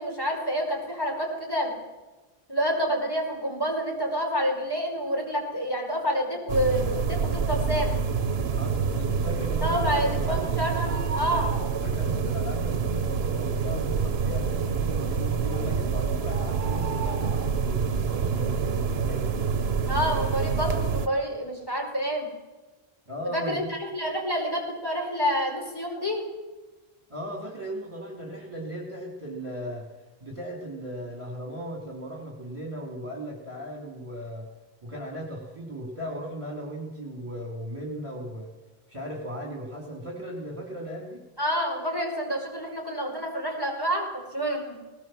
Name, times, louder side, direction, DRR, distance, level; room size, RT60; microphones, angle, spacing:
voice 1, 0.0-1.7 2.5-7.9 9.6-11.5 19.9-22.3 23.3-26.2 41.4-44.1 44.3-44.8, equal, 20° left, 0 dB, 5.2 m, -28 dB
sound 1, 6.5-21.1, right 5 dB, 80° right, 1.2 m, -27 dB
voice 2, 8.5-10.4 11.8-19.3 23.1-23.7 27.1-29.9 30.2-34.5 34.8-38.5 38.9-41.2, equal, 30° right, 0 dB, 3.1 m, -37 dB
19.0 x 18.5 x 7.7 m, 1.2 s
omnidirectional pair, 1.0 m